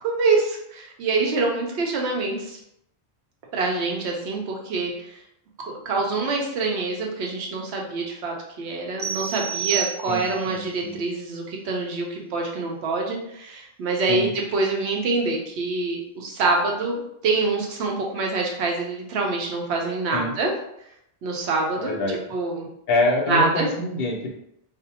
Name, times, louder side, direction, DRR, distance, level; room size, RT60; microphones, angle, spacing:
voice 1, 0.0-2.6 3.5-4.9 5.7-20.5 21.2-22.0 22.3-22.7 23.3-23.7, right 3 dB, 85° right, 0 dB, 0.9 m, -25 dB
sound 1, 9.0-10.5, right 10 dB, 45° right, 0.5 m, -29 dB
voice 2, 10.1-11.0 14.1-14.3 20.1-20.4 21.8-22.2 22.9-24.3, left 1 dB, 70° left, 0 dB, 0.8 m, -25 dB
2.5 x 2.1 x 2.7 m, 0.76 s
omnidirectional pair, 1.1 m